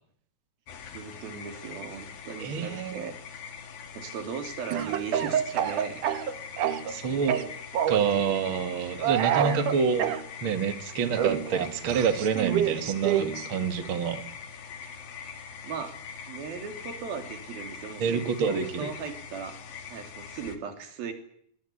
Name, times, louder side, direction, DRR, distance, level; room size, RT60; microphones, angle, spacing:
sound 1, 0.7-20.6, left 6 dB, 75° left, 3.9 m, -43 dB
voice 1, 0.9-3.2 3.9-6.0 15.6-16.0 16.3-19.6 19.9-21.1, right 6 dB, 85° right, 7 dB, 4.7 m, -37 dB
voice 2, 2.4-3.0 6.9-7.4 7.9-10.1 10.4-14.3 18.0-18.9, right 6 dB, 40° right, 9 dB, 2.3 m, -27 dB
Speech / Cough, 4.7-7.0 7.3-8.1 9.0-10.2 11.1-13.5, right 9 dB, 65° right, 2.7 m, -27 dB
23.0 x 21.0 x 8.6 m, 0.65 s
omnidirectional pair, 4.1 m